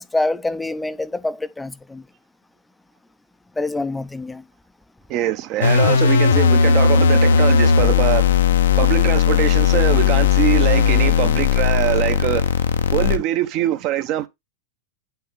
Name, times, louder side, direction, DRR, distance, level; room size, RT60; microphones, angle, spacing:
voice 1, 0.0-2.0 3.6-4.4, left 2 dB, 5° left, 0.6 m, -26 dB
voice 2, 5.1-8.4 8.8-12.5 12.9-14.3, right 13 dB, 40° right, 1.0 m, -23 dB
sound 1, 5.6-13.2, left 6 dB, 65° left, 0.7 m, -16 dB
9.6 x 6.0 x 3.5 m
figure-of-eight pair, 90°, 0 cm